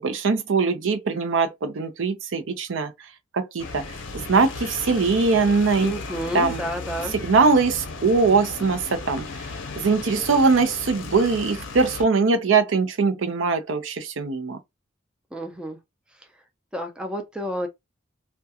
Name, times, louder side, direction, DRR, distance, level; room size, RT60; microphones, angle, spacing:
voice 1, 0.0-2.9 3.3-5.9 6.3-6.6 7.1-9.2 9.8-14.6, right 4 dB, 75° right, 0.5 m, -21 dB
sound 1, 3.6-12.1, left 4 dB, 70° left, 0.5 m, -36 dB
voice 2, 5.8-7.1 15.3-15.8 16.7-17.7, equal, 5° right, 0.4 m, -30 dB
2.3 x 2.2 x 2.7 m
head